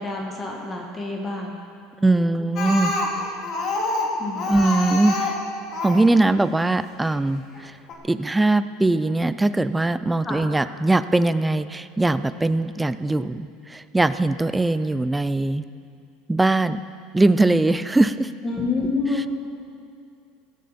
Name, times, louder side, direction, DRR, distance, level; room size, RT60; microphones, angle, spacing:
voice 1, 0.0-1.6 4.2-4.5 10.2-10.5 18.4-19.3, left 3 dB, 15° left, 0 dB, 1.6 m, -27 dB
voice 2, 2.0-2.9 4.5-5.4 5.8-7.7 8.0-15.6 16.3-16.8 17.1-18.3, right 2 dB, 5° right, 13 dB, 0.4 m, -21 dB
Speech, 2.6-6.1 7.0-7.1 7.5-7.6 7.9-8.0, left 2 dB, 40° left, 2.2 m, -26 dB
17.0 x 14.0 x 4.2 m, 2.4 s
supercardioid pair, 150°, 0 cm